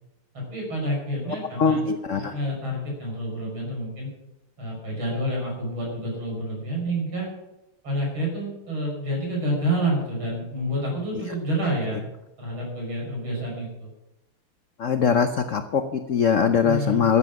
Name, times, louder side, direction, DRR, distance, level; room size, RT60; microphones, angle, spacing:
voice 1, 0.3-1.8 2.1-4.1 4.6-7.3 7.8-12.1 12.4-13.9 16.6-17.2, right 1 dB, 65° right, -1 dB, 6.9 m, -28 dB
voice 2, 1.6-2.3 14.8-17.2, left 6 dB, 70° left, 8 dB, 0.7 m, -22 dB
13.0 x 11.5 x 6.2 m, 0.93 s
omnidirectional pair, 2.4 m